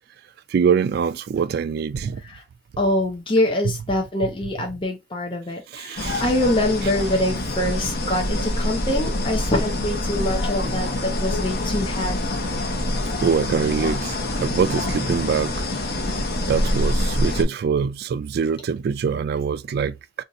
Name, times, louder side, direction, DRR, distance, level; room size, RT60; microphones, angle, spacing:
voice 1, 0.5-2.2 5.7-6.2 13.2-14.2 14.4-15.5 16.5-20.2, right 6 dB, 60° right, 0.3 m, -23 dB
voice 2, 2.8-12.4, left 1 dB, 30° left, 0.5 m, -24 dB
sound 1, 6.0-17.4, left 1 dB, 60° left, 0.8 m, -25 dB
2.6 x 2.4 x 4.0 m
head